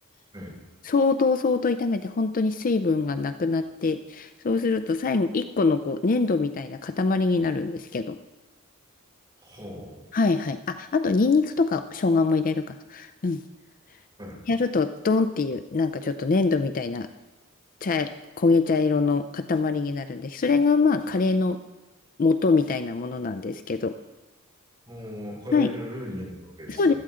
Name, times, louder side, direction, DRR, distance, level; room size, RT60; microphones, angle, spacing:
voice 1, 0.8-8.2 10.1-13.4 14.5-17.1 17.8-18.1 18.4-21.6 22.2-23.9 25.5-25.7 26.7-26.9, left 4 dB, 40° left, 10 dB, 0.4 m, -24 dB
voice 2, 9.4-10.0 14.2-14.4 24.9-27.0, left 1 dB, 20° right, -5 dB, 5.3 m, -37 dB
16.0 x 12.5 x 3.7 m, 1.1 s
head